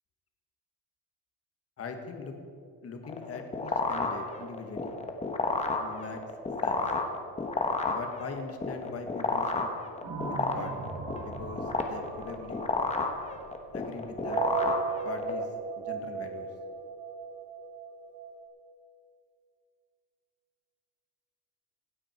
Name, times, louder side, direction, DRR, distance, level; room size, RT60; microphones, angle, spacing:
voice 1, 1.8-2.4 2.8-5.0 5.8-6.2 6.6-6.8 7.9-9.7 10.3-10.9 11.2-12.7 13.7-14.4 15.0-15.5 15.7-16.5, left 4 dB, 30° left, 5 dB, 1.8 m, -41 dB
sound 1, 3.0-15.4, left 3 dB, 15° left, 1.2 m, -31 dB
sound 2, 10.0-13.7 14.1-18.4, right 5 dB, 60° right, 2.5 m, -37 dB
26.0 x 8.9 x 4.6 m, 2.4 s
cardioid pair, 155°, 47 cm